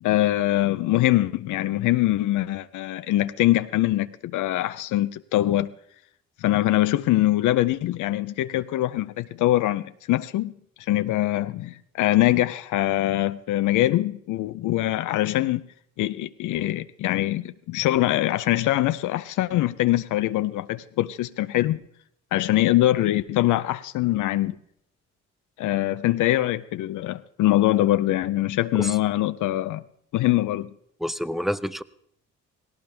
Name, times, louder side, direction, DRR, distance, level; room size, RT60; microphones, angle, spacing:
voice 1, 0.0-5.7 6.4-10.5 10.9-15.6 16.0-21.8 22.3-24.6 25.6-29.8 30.1-30.7, left 15 dB, 80° left, 0.6 m, -23 dB
voice 2, 31.0-31.8, equal, ahead, 0.6 m, -28 dB
17.5 x 17.5 x 3.4 m
cardioid pair, 90°, 30 cm